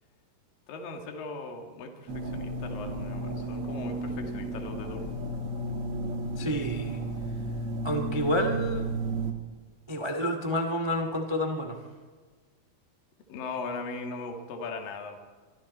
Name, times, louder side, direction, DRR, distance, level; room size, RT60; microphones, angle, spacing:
voice 1, 0.7-5.1 13.3-15.2, left 3 dB, 65° left, 3 dB, 3.6 m, -39 dB
sound 1, 2.1-9.3, right 2 dB, 45° right, 2.5 m, -33 dB
voice 2, 6.4-7.0 7.8-8.8 9.9-11.7, equal, 25° right, 5 dB, 0.5 m, -29 dB
25.0 x 24.0 x 4.3 m, 1.5 s
omnidirectional pair, 4.5 m